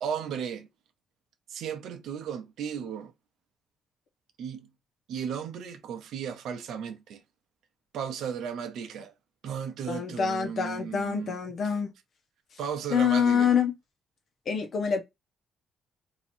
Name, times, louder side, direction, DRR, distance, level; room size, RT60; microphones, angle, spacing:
voice 1, 0.0-0.7 1.5-3.1 4.4-4.7 5.1-7.2 7.9-9.1 9.4-11.7 12.6-13.6, right 7 dB, 75° right, 0.7 m, -35 dB
voice 2, 9.9-11.9 12.9-13.7 14.5-15.0, left 7 dB, 55° left, 1.0 m, -26 dB
3.0 x 2.7 x 4.3 m
cardioid pair, 90°, 0 cm